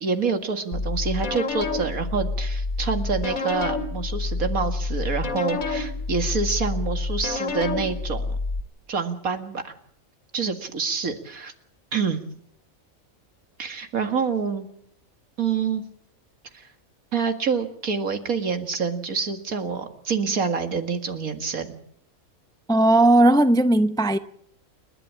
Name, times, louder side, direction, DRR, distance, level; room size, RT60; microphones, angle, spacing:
voice 1, 0.0-8.4 8.9-9.7 10.3-11.5 11.9-12.2 13.6-14.7 15.4-15.8 16.5-16.7 17.1-21.8, right 5 dB, 80° right, 2.4 m, -27 dB
sound 1, 0.7-8.6, left 3 dB, 80° left, 2.6 m, -28 dB
voice 2, 22.7-24.2, right 1 dB, 5° left, 0.5 m, -17 dB
29.5 x 11.0 x 8.6 m
omnidirectional pair, 1.4 m